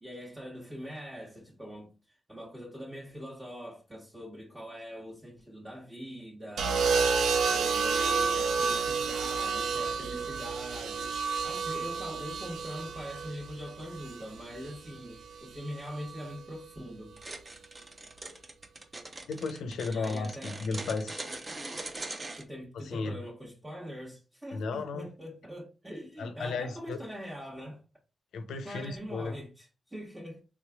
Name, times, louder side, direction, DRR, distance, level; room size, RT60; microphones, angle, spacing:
voice 1, 0.0-6.8 7.3-17.2 19.8-20.6 22.4-27.8 28.6-30.4, equal, 15° right, 1.1 m, -43 dB
sound 1, 6.6-14.7 15.9-16.3, right 5 dB, 85° right, 0.5 m, -30 dB
sound 2, 17.2-22.4, right 2 dB, 35° right, 0.7 m, -41 dB
voice 2, 19.3-21.2 22.8-23.1 24.5-25.1 26.2-27.0 28.3-29.3, left 4 dB, 85° left, 0.5 m, -34 dB
3.4 x 3.2 x 2.2 m
cardioid pair, 60°, 0 cm